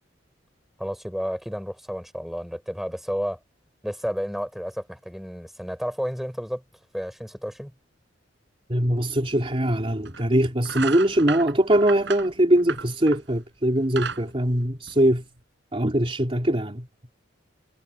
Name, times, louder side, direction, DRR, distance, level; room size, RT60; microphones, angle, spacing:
voice 1, 0.8-3.4 3.8-6.6 6.9-7.7, equal, ahead, 7.6 m, -31 dB
voice 2, 8.7-15.2 15.7-16.9, right 1 dB, 30° right, 3.3 m, -22 dB
sound 1, 9.3-9.4 10.0-10.3 10.6-13.3 13.7-15.4, right 6 dB, 70° right, 6.7 m, -34 dB
head